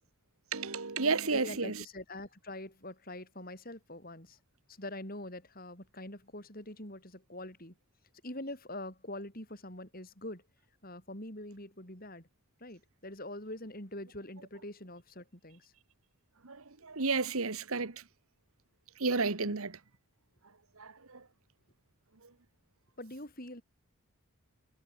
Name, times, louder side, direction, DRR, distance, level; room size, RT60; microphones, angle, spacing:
voice 1, 0.5-1.8 16.4-16.6 16.8-17.9 19.0-19.8 20.8-21.2, right 4 dB, 75° right, 1.5 m, -31 dB
voice 2, 1.3-4.4 4.7-7.7 8.2-10.4 10.8-12.3 12.6-15.7 19.4-19.6 23.0-23.6, left 1 dB, 40° left, 6.6 m, -44 dB
head